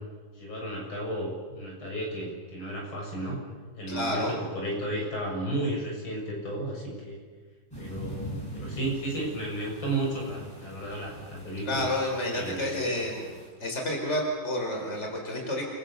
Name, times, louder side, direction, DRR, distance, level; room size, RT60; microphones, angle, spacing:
voice 1, 0.4-3.4 3.8-7.2 7.8-11.9 12.3-12.9, right 1 dB, 80° left, -1 dB, 8.0 m, -33 dB
voice 2, 3.9-4.4 11.6-13.3 13.6-15.7, left 1 dB, 35° left, 1 dB, 5.0 m, -30 dB
sound 1, 7.7-13.5, right 1 dB, 10° left, 7.2 m, -42 dB
29.0 x 23.5 x 7.0 m, 1.4 s
omnidirectional pair, 2.2 m